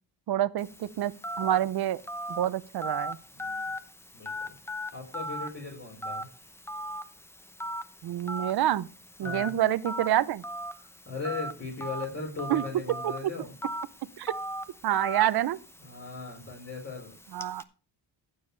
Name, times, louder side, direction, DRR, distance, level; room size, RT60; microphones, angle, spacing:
voice 1, 0.3-1.1 1.4-2.0 2.3-3.2 8.0-8.9 9.2-10.4 12.5-12.6 13.0-13.1 14.2-14.3 14.8-15.6 17.3-17.6, right 13 dB, 60° right, 0.7 m, -27 dB
Telephone, 0.6-17.6, equal, 5° left, 0.7 m, -39 dB
voice 2, 3.3-3.7 4.1-6.3 9.2-9.5 10.7-13.5 15.8-17.1, left 4 dB, 30° left, 4.7 m, -39 dB
14.5 x 7.2 x 3.3 m
cardioid pair, 85°, 44 cm